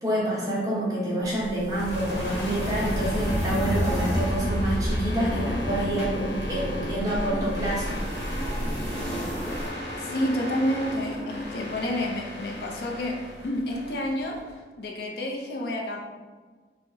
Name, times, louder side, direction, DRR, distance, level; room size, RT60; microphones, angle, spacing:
voice 1, 0.0-8.0, right 1 dB, 20° right, -7 dB, 0.9 m, -27 dB
sound 1, 1.2-9.7, equal, 10° left, 1.0 m, -31 dB
sound 2, 1.7-14.5, left 1 dB, 75° left, 1.0 m, -35 dB
sound 3, 5.2-11.4, equal, 40° left, 0.9 m, -38 dB
voice 2, 10.0-13.2 13.4-14.4 14.8-16.0, left 1 dB, 60° left, 0 dB, 0.4 m, -29 dB
4.5 x 2.0 x 2.6 m, 1.4 s
head